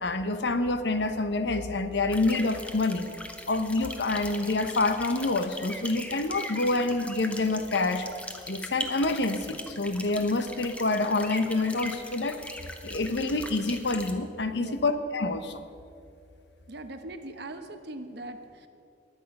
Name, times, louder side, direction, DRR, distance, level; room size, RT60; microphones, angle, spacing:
voice 1, 0.0-3.1 3.5-8.1 8.5-15.6, left 2 dB, 65° left, 10 dB, 0.9 m, -27 dB
sound 1, 2.1-14.1, left 1 dB, 5° left, 0.9 m, -40 dB
voice 2, 16.7-18.7, right 2 dB, 65° right, 8 dB, 1.0 m, -40 dB
21.0 x 8.2 x 5.4 m, 2.5 s
head